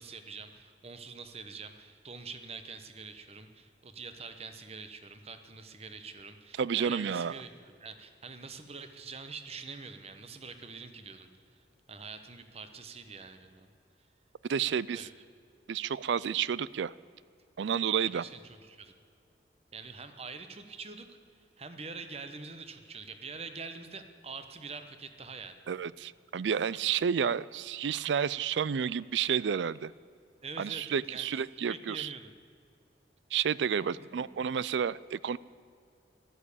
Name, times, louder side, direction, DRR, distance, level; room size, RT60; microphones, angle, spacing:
voice 1, 0.0-11.6 11.9-13.7 14.9-15.1 18.0-18.9 19.7-21.2 21.6-25.6 30.4-32.3 33.8-34.4, right 4 dB, 35° right, 9 dB, 1.1 m, -45 dB
voice 2, 6.6-7.4 14.5-15.1 15.7-16.9 17.6-18.2 25.7-29.9 30.6-32.1 33.3-35.4, right 7 dB, 75° right, 20 dB, 0.4 m, -30 dB
13.5 x 12.5 x 8.4 m, 2.3 s
head